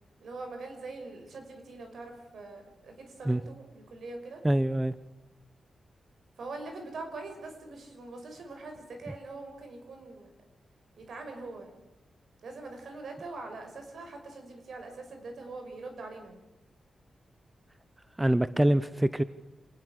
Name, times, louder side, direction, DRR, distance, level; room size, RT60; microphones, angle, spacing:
voice 1, 0.2-4.4 6.4-10.3 11.0-11.8 12.4-16.4, right 3 dB, 65° right, 4 dB, 5.9 m, -43 dB
voice 2, 4.4-4.9 18.2-19.2, right 1 dB, 10° right, 14 dB, 0.7 m, -25 dB
27.0 x 19.5 x 6.5 m, 0.99 s
wide cardioid pair, 125°, 0 cm